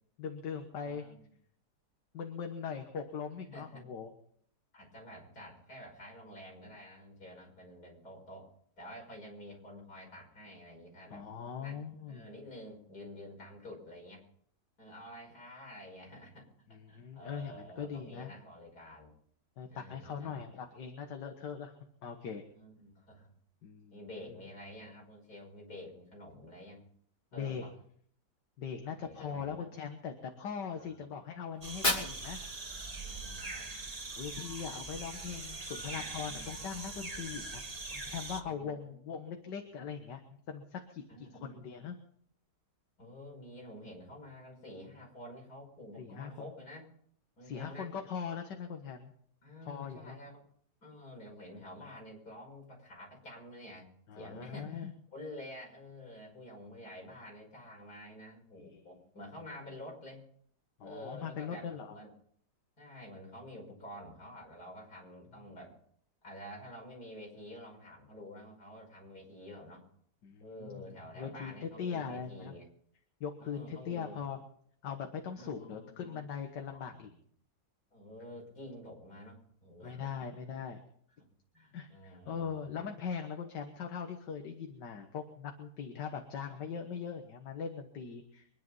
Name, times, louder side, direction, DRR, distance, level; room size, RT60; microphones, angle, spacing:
voice 1, 0.2-1.1 2.1-4.1 11.1-12.3 16.7-18.3 19.6-21.8 22.0-22.4 23.6-24.0 27.3-27.6 28.6-32.4 34.2-37.6 37.9-40.2 40.5-42.0 46.0-46.3 47.4-49.1 49.7-50.2 54.1-54.9 58.6-58.8 60.8-62.0 70.2-72.5 73.2-74.4 74.8-77.1 78.3-78.4 79.8-80.8 81.7-88.5, left 6 dB, 80° left, 4 dB, 2.0 m, -41 dB
voice 2, 0.8-1.3 3.5-3.8 4.7-11.2 11.6-14.2 14.8-19.1 19.7-20.6 22.5-23.3 23.9-26.9 27.3-27.7 28.9-29.7 30.8-31.1 33.0-33.7 34.5-34.8 35.8-36.6 38.4-39.2 41.1-41.6 43.0-46.9 47.4-47.9 49.4-50.4 50.8-60.2 60.8-62.1 62.8-65.7 66.2-69.8 70.4-72.7 73.4-74.2 75.3-76.2 76.7-77.1 77.9-80.3 81.2-82.7, left 1 dB, 60° left, -1 dB, 6.2 m, -49 dB
Fire, 31.5-33.5, left 1 dB, 25° left, 3.1 m, -36 dB
sound 1, 31.6-38.4, right 3 dB, 25° right, 1.4 m, -42 dB
24.5 x 10.5 x 5.4 m, 0.64 s
omnidirectional pair, 1.8 m